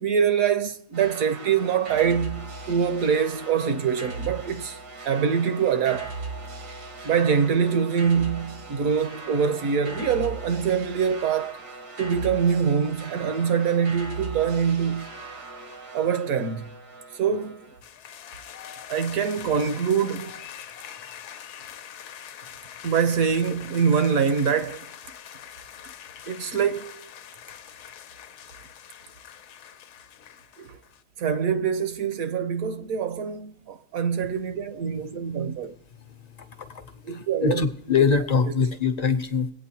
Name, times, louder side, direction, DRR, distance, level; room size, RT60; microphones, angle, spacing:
voice 1, 0.0-4.8 5.0-6.1 7.0-11.6 12.0-15.1 15.9-16.7 17.2-17.7 18.9-20.3 22.8-24.9 26.3-27.0 30.6-30.8 31.2-35.7 37.0-37.6, right 7 dB, 70° right, 1.0 m, -24 dB
sound 1, 0.9-17.8, right 3 dB, 85° right, 1.9 m, -39 dB
sound 2, 17.8-31.0, left 9 dB, 85° left, 1.2 m, -43 dB
voice 2, 36.6-39.5, left 5 dB, 50° left, 0.4 m, -23 dB
22.5 x 8.7 x 2.8 m
omnidirectional pair, 1.6 m